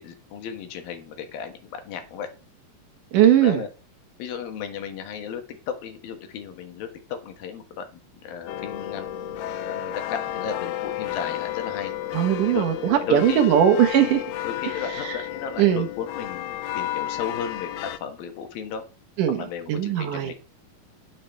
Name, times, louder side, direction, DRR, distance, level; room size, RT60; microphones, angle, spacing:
voice 1, 0.0-2.3 3.4-3.7 4.2-9.2 9.6-11.9 12.5-12.7 13.0-13.5 14.0-14.2 14.4-18.8 19.4-20.3, left 7 dB, 70° left, 3.1 m, -35 dB
voice 2, 3.1-3.6 12.1-14.2 15.6-15.9 19.2-19.4 19.7-20.3, right 10 dB, 70° right, 2.4 m, -19 dB
sound 1, 8.5-18.0, left 12 dB, 90° left, 2.8 m, -32 dB
9.6 x 9.2 x 4.5 m
omnidirectional pair, 4.4 m